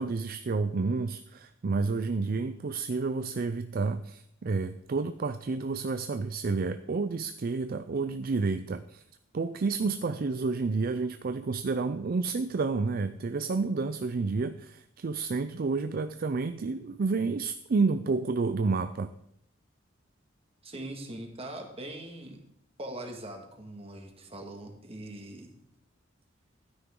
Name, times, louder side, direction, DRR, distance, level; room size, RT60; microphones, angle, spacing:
voice 1, 0.0-9.0 9.3-19.1, right 4 dB, 50° right, 10 dB, 0.4 m, -30 dB
voice 2, 20.6-22.4 22.8-25.6, right 1 dB, 30° right, 3 dB, 1.8 m, -41 dB
12.5 x 9.7 x 3.7 m, 0.73 s
head